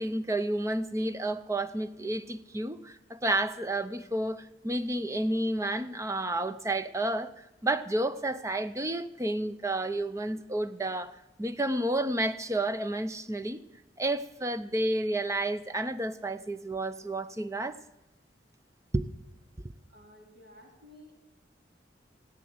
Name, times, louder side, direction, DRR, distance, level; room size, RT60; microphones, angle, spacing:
voice 1, 0.0-7.3 7.6-13.6 14.0-17.8 18.9-19.1, right 1 dB, 15° right, 0.6 m, -31 dB
voice 2, 19.9-21.1, left 1 dB, 65° right, 3.8 m, -53 dB
17.5 x 9.0 x 7.9 m
head